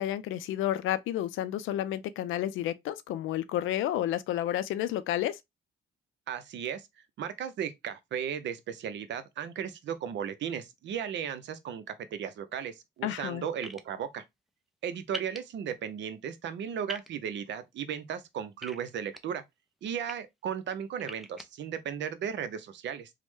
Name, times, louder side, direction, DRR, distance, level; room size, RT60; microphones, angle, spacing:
voice 1, 0.0-5.4 13.0-13.4, left 12 dB, 80° left, 0.4 m, -31 dB
voice 2, 6.3-6.9 7.2-11.8 12.1-14.2 14.8-19.4 19.8-23.1, right 8 dB, 65° right, 0.6 m, -35 dB
sound 1, 13.6-13.8 15.1-15.4 16.9-17.1 18.6-19.2 19.8-20.1 21.0-21.4, equal, ahead, 0.4 m, -40 dB
3.1 x 2.1 x 3.1 m
cardioid pair, 90°, 20 cm